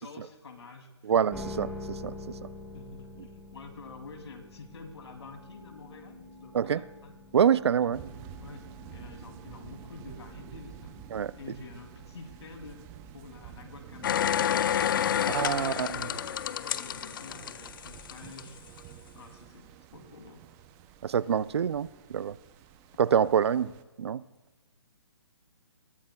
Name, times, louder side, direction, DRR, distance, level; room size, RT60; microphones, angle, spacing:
voice 1, 0.0-1.5 2.7-7.1 7.9-8.0 8.4-11.1 11.4-12.8 13.1-14.4 15.0-18.6 19.1-20.4, left 4 dB, 70° left, 2.7 m, -48 dB
voice 2, 1.0-2.1 6.5-6.8 7.3-8.0 11.1-11.3 15.3-15.9 21.0-22.4 23.0-23.7 24.0-24.2, right 8 dB, 65° right, 0.5 m, -26 dB
sound 1, 1.3-13.6, left 2 dB, ahead, 1.3 m, -47 dB
sound 2, 7.9-23.8, right 9 dB, 15° right, 0.5 m, -49 dB
sound 3, 14.0-18.4 18.8-18.9, left 9 dB, 45° left, 0.6 m, -29 dB
21.5 x 17.0 x 2.3 m
hypercardioid pair, 150°, 15 cm